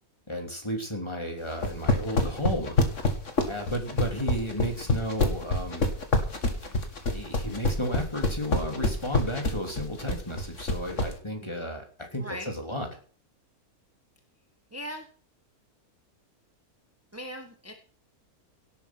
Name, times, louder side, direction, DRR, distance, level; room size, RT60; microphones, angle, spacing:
voice 1, 0.3-2.7 3.4-5.9 7.1-13.0, equal, 20° left, 3 dB, 3.3 m, -33 dB
sound 1, 1.5-11.1, left 2 dB, 55° left, 2.6 m, -26 dB
voice 2, 12.2-12.5 14.7-15.1 17.1-17.7, equal, 10° right, 4 dB, 1.7 m, -38 dB
18.0 x 8.5 x 6.2 m, 0.42 s
omnidirectional pair, 1.6 m